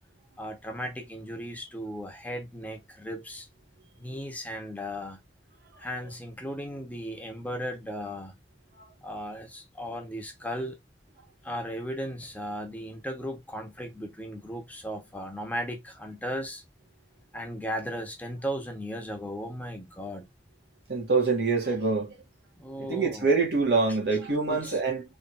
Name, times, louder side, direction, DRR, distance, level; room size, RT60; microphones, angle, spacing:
voice 1, 0.4-3.5 4.0-5.2 5.8-8.4 9.0-10.8 11.4-16.6 17.3-20.3 22.6-23.3 23.9-24.0 24.5-24.8, equal, 10° left, 1.1 m, -36 dB
voice 2, 20.9-22.1 22.9-25.0, right 4 dB, 65° right, 1.9 m, -25 dB
4.1 x 3.2 x 2.6 m
head